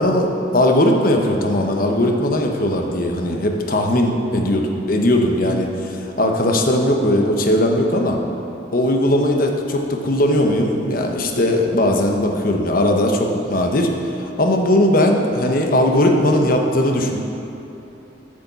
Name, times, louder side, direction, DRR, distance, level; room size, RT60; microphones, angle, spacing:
voice 1, 0.0-8.2 8.7-17.2, left 1 dB, 50° left, 2 dB, 1.0 m, -18 dB
8.5 x 6.7 x 6.9 m, 2.9 s
head